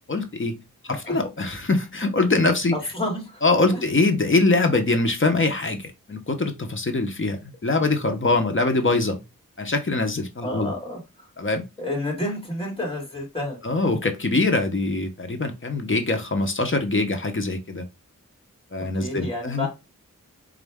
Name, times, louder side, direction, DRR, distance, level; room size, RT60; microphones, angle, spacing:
voice 1, 0.1-0.6 0.9-2.7 3.4-9.2 9.6-10.7 11.4-11.6 13.6-17.8 18.7-19.7, left 3 dB, 35° left, 0.8 m, -23 dB
voice 2, 2.7-3.4 3.7-3.8 10.4-11.3 11.8-13.6 18.8-19.7, left 1 dB, 15° left, 1.8 m, -30 dB
4.1 x 2.5 x 3.5 m
wide cardioid pair, 90°, 33 cm